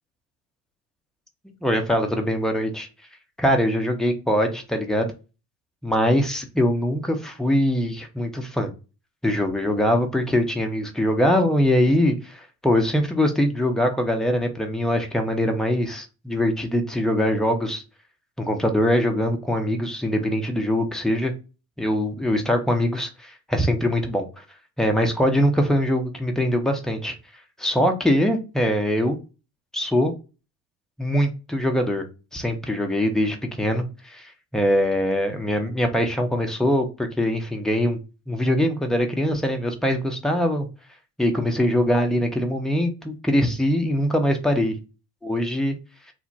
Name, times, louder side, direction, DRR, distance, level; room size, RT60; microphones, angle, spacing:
voice 1, 1.6-2.9 3.4-5.1 5.8-8.7 9.2-17.8 18.4-21.3 21.8-24.4 24.8-27.2 27.6-29.2 29.7-30.1 31.0-32.0 32.3-38.0 38.3-40.7 41.2-44.8 45.2-45.8, equal, ahead, 0.5 m, -22 dB
3.0 x 2.1 x 2.6 m
hypercardioid pair, 60°, 49 cm